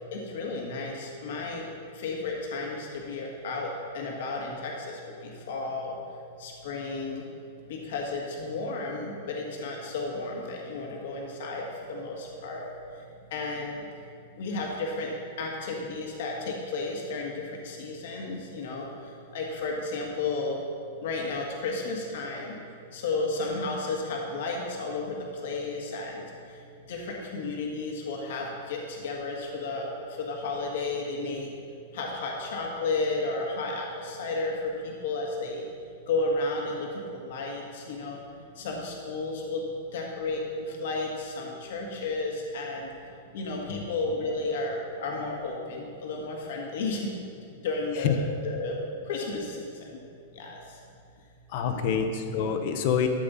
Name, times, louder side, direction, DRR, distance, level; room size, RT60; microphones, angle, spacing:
voice 1, 0.1-1.6 2.0-4.9 5.2-5.9 6.4-7.2 7.7-12.7 13.3-13.8 14.4-15.1 15.4-18.9 19.3-20.6 21.0-22.5 22.9-25.2 25.4-26.2 26.9-29.9 30.2-31.5 31.9-35.6 36.1-38.2 38.6-39.6 39.9-42.8 43.3-47.1 47.6-48.8 49.1-49.6 50.3-50.6 51.6-52.0, left 3 dB, 65° left, 0 dB, 1.7 m, -32 dB
voice 2, 51.5-53.1, left 8 dB, 45° left, 7 dB, 0.9 m, -26 dB
13.0 x 7.8 x 4.1 m, 2.4 s
supercardioid pair, 165°, 0 cm